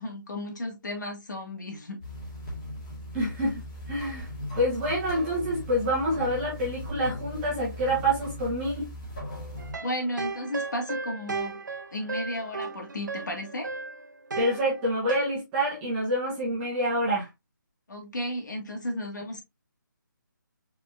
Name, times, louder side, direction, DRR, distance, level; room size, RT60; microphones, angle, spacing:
voice 1, 0.0-2.0 9.8-11.6 11.9-13.7 17.9-19.4, left 1 dB, 60° left, 2.4 m, -34 dB
sound 1, 2.0-9.7, left 1 dB, 20° left, 2.1 m, -38 dB
voice 2, 3.1-3.6 3.9-4.3 4.5-8.9 14.4-17.3, equal, 10° right, 1.2 m, -27 dB
sound 2, 9.6-15.2, right 4 dB, 65° right, 1.0 m, -35 dB
4.7 x 4.6 x 2.4 m
hypercardioid pair, 175°, 11 cm